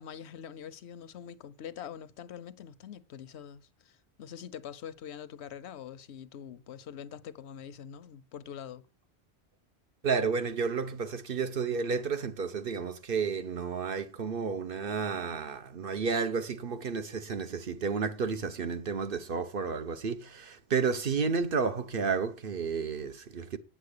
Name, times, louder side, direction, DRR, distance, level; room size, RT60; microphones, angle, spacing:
voice 1, 0.0-8.9, left 8 dB, 90° left, 1.0 m, -44 dB
voice 2, 10.0-23.6, right 5 dB, 55° right, 1.1 m, -31 dB
8.8 x 7.9 x 6.6 m
omnidirectional pair, 1.1 m